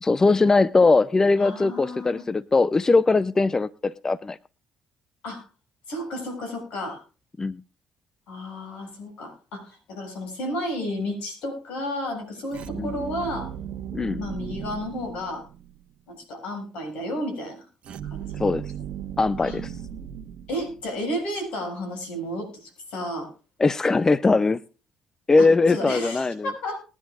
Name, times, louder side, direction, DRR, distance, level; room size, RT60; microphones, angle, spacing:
voice 1, 0.0-4.4 7.4-7.6 12.8-12.9 13.9-14.2 18.4-18.6 19.2-19.7 23.6-24.6 25.3-26.5, left 3 dB, 25° left, 16 dB, 0.5 m, -20 dB
voice 2, 1.4-2.2 5.2-5.5 5.9-7.0 8.3-13.5 14.2-15.5 16.1-17.7 18.0-18.4 19.4-19.6 20.5-23.3 25.4-26.8, left 1 dB, 75° left, 4 dB, 6.9 m, -32 dB
sound 1, 12.5-15.8 17.8-21.1, right 9 dB, 60° right, 1.2 m, -36 dB
20.5 x 10.5 x 2.4 m, 0.33 s
supercardioid pair, 60°, 2 cm